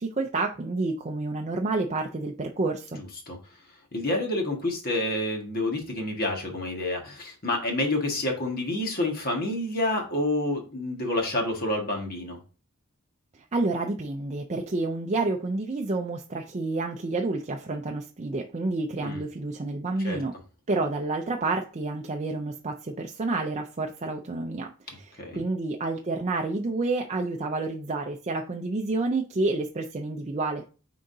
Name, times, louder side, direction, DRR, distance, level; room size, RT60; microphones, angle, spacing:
voice 1, 0.0-3.0 13.3-20.3 20.7-30.6, right 3 dB, 30° right, 3 dB, 0.5 m, -29 dB
voice 2, 3.9-12.4 19.0-19.2 20.0-20.2 25.2-25.4, left 1 dB, 45° left, 1 dB, 1.6 m, -28 dB
9.7 x 3.8 x 2.7 m, 0.35 s
head